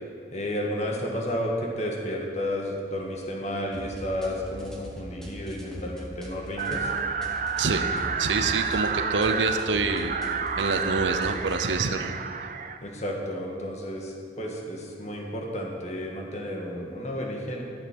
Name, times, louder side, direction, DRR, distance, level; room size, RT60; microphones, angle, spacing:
voice 1, 0.3-6.9 12.8-17.6, equal, 40° left, -1 dB, 1.6 m, -32 dB
sound 1, 3.7-11.7, equal, 5° left, 1.5 m, -42 dB
sound 2, 6.6-12.8, right 5 dB, 45° right, 0.5 m, -30 dB
voice 2, 8.2-10.2 10.6-12.1, right 4 dB, 80° right, 7 dB, 0.8 m, -26 dB
13.0 x 7.3 x 6.0 m, 2.4 s
head